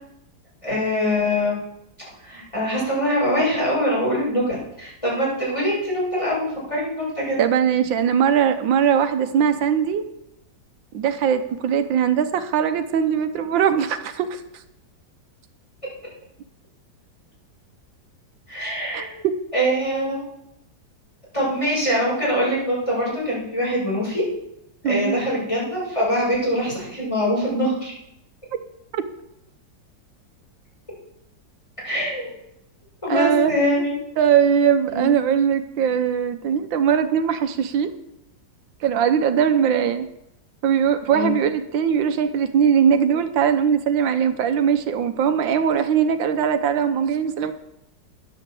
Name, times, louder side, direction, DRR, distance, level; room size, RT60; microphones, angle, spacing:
voice 1, 0.6-1.6 2.2-7.4 18.5-19.2 19.5-20.2 21.3-24.2 24.8-27.9 31.8-32.4 33.0-34.0 34.9-35.1 41.1-41.4, equal, 15° left, -5 dB, 7.0 m, -23 dB
voice 2, 7.4-10.1 10.9-14.4 18.9-19.0 24.8-25.2 28.9-29.0 33.1-33.9 34.2-37.9 38.8-40.1 40.6-47.5, right 8 dB, 85° right, 10 dB, 1.6 m, -20 dB
11.0 x 10.0 x 7.6 m, 0.82 s
omnidirectional pair, 2.0 m